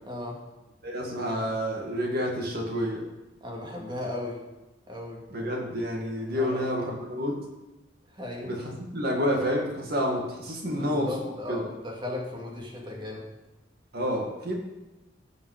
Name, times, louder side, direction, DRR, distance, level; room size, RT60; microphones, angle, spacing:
voice 1, 0.0-0.4 3.4-4.4 4.9-5.2 6.3-6.7 8.1-8.6 10.6-13.3, left 2 dB, 25° right, -1 dB, 2.3 m, -36 dB
voice 2, 0.8-3.0 5.3-7.4 8.5-8.6 8.9-11.1 11.5-11.7 13.9-14.6, equal, 55° right, -1 dB, 2.0 m, -29 dB
15.5 x 5.5 x 4.9 m, 1.0 s
head